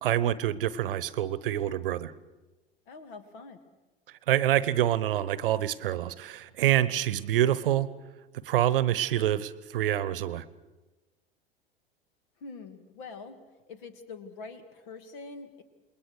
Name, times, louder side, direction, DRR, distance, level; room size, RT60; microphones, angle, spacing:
voice 1, 0.0-2.1 4.3-7.9 8.4-10.4, right 12 dB, 65° right, 18 dB, 1.0 m, -26 dB
voice 2, 2.9-3.6 12.4-13.4 13.7-15.6, left 4 dB, 55° left, 9 dB, 2.5 m, -44 dB
28.0 x 21.0 x 6.6 m, 1.2 s
figure-of-eight pair, 80°, 30 cm